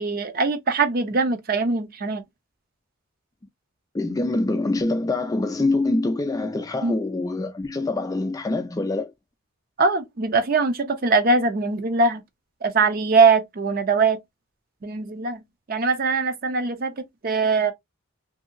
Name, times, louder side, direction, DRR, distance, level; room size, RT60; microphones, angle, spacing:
voice 1, 0.0-2.2 6.8-7.0 9.8-12.2 12.6-14.2 14.8-15.4 15.7-17.7, right 4 dB, 45° right, 0.5 m, -22 dB
voice 2, 3.9-9.1, left 2 dB, 15° left, 0.3 m, -25 dB
2.7 x 2.7 x 2.5 m
head